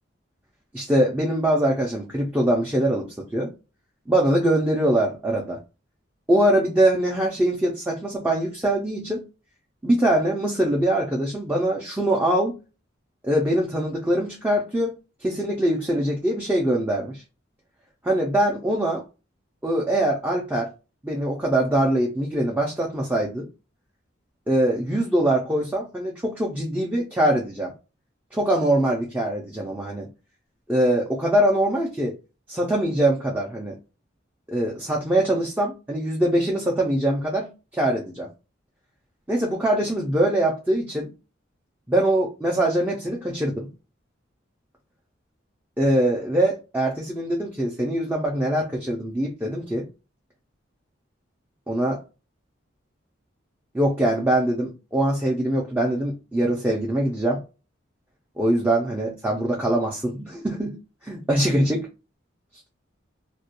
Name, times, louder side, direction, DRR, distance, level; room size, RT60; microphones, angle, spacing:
voice 1, 0.7-3.1 3.3-3.5 4.1-5.6 6.3-9.2 9.8-12.5 13.2-14.9 15.2-17.2 18.0-19.0 19.6-20.7 21.0-23.5 24.5-27.7 28.3-30.1 30.7-32.1 32.5-33.8 34.5-38.3 39.3-41.1 41.9-43.7 45.8-49.8 51.7-52.0 53.7-57.4 58.4-60.8 61.0-61.9, right 1 dB, 10° right, -3 dB, 0.4 m, -23 dB
2.3 x 2.2 x 2.8 m, 0.30 s
head